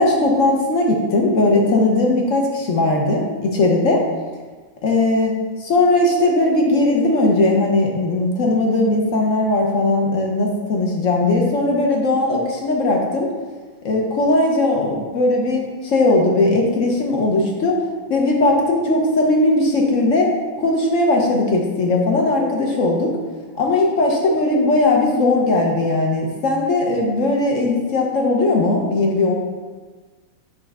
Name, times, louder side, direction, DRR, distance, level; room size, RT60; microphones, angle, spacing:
voice 1, 0.0-4.0 4.8-13.3 13.8-20.3 20.6-23.2 23.5-29.3, left 2 dB, 55° left, 0 dB, 0.8 m, -18 dB
7.2 x 5.3 x 3.4 m, 1.3 s
omnidirectional pair, 2.3 m